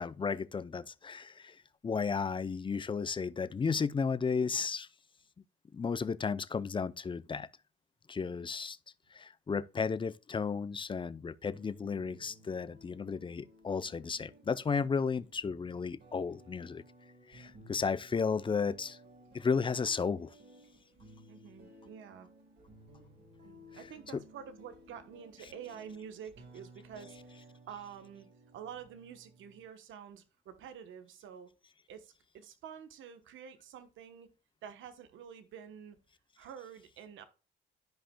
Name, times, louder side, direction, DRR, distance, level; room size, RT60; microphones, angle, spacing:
voice 1, 0.0-1.5 1.8-4.9 5.7-7.5 8.1-8.8 9.1-16.8 17.3-19.0 19.3-20.3, left 5 dB, 25° left, 0.5 m, -33 dB
voice 2, 8.2-8.5 17.6-17.8 21.3-22.3 23.4-28.3 28.5-31.5 31.9-34.3 34.6-36.0 36.4-37.2, right 8 dB, 75° right, 1.0 m, -49 dB
sound 1, 11.6-29.7, right 1 dB, 60° right, 3.8 m, -57 dB
12.5 x 5.2 x 2.2 m
cardioid pair, 90°, 20 cm